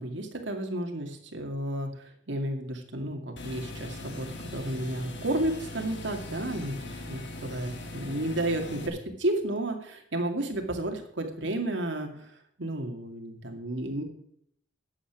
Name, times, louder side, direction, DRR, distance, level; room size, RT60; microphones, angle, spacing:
voice 1, 0.0-1.9 2.3-4.3 4.5-12.3 12.6-14.0, right 1 dB, 90° right, 3 dB, 2.3 m, -32 dB
sound 1, 3.4-8.9, left 2 dB, 75° left, 1.8 m, -40 dB
11.5 x 8.3 x 6.1 m, 0.67 s
head